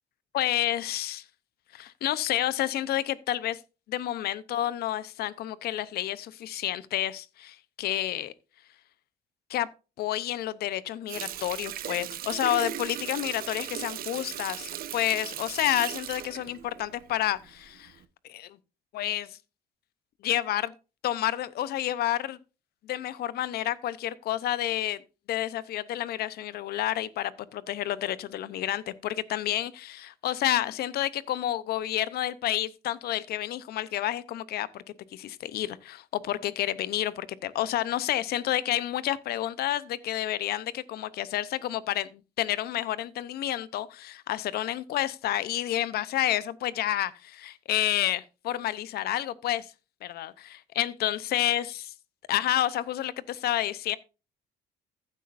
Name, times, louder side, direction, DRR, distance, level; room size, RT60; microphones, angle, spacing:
voice 1, 0.3-1.2 1.7-3.6 3.9-8.3 9.5-9.7 10.0-17.9 18.3-18.6 18.9-19.4 20.2-20.7 21.0-22.4 22.8-25.0 25.3-34.8 35.1-49.7 50.0-51.8 52.3-54.0, left 13 dB, 70° left, 0.8 m, -30 dB
Water tap faucet, 11.1-17.5 17.9-18.0, right 11 dB, 60° right, 1.0 m, -37 dB
15.0 x 8.3 x 2.6 m
cardioid pair, 110°, 17 cm